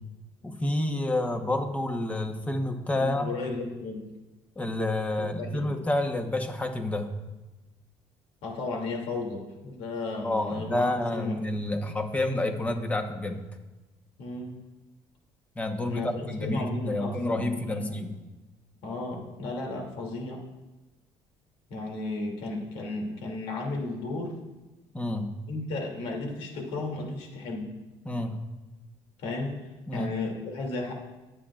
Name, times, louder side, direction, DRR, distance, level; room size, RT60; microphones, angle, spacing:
voice 1, 0.4-3.3 4.6-7.1 10.2-13.4 15.5-18.2 24.9-25.3 28.0-28.4 29.9-30.1, left 1 dB, 15° left, 5 dB, 1.1 m, -29 dB
voice 2, 3.0-4.1 5.2-5.7 8.4-11.4 14.2-14.6 15.8-18.0 18.8-20.4 21.7-24.3 25.5-27.7 29.2-29.5 29.9-30.9, left 3 dB, 85° left, 0 dB, 2.8 m, -34 dB
21.0 x 8.9 x 2.5 m, 1.1 s
cardioid pair, 135°, 10 cm